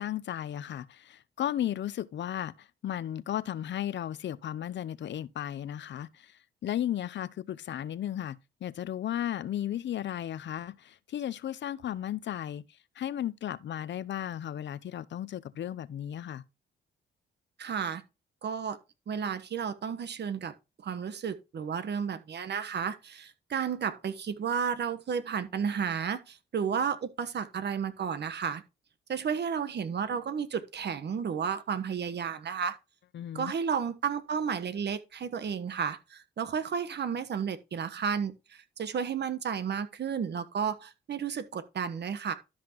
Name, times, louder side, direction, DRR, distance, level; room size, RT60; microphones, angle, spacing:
voice 1, 0.0-6.3 6.6-12.6 13.0-16.4 33.1-33.5, left 11 dB, 60° left, 0.7 m, -35 dB
voice 2, 17.6-18.0 18.4-18.8 19.1-20.5 20.8-28.6 29.1-32.8 33.3-42.3, right 7 dB, 55° right, 1.3 m, -32 dB
12.5 x 5.7 x 3.0 m
supercardioid pair, 60°, 21 cm